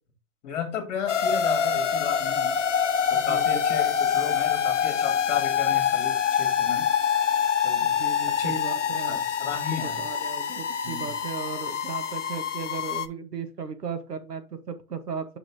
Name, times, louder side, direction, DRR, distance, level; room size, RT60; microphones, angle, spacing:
voice 1, 0.4-2.6 3.1-6.9 7.6-7.9 8.3-8.6 9.1-10.0 10.8-11.1, left 7 dB, 25° left, 6 dB, 2.0 m, -34 dB
sound 1, 1.1-13.1, left 8 dB, 50° left, 0.7 m, -25 dB
voice 2, 3.1-3.6 7.8-9.2 9.5-15.3, right 5 dB, 85° right, 9 dB, 1.5 m, -36 dB
5.7 x 5.4 x 3.5 m, 0.31 s
hypercardioid pair, 150°, 46 cm